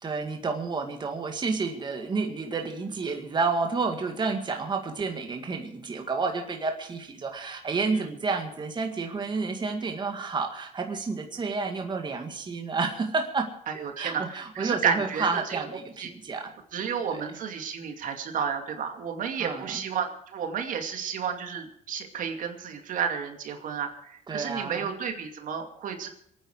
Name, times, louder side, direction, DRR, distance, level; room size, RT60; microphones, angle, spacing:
voice 1, 0.0-13.5 13.9-16.5 17.1-17.2 19.4-19.9 24.3-25.0, right 4 dB, 30° right, 4 dB, 2.0 m, -30 dB
voice 2, 13.7-15.6 16.0-16.1 16.7-26.1, right 7 dB, 65° right, 5 dB, 2.4 m, -31 dB
26.5 x 9.6 x 4.7 m, 0.70 s
cardioid pair, 115°, 15 cm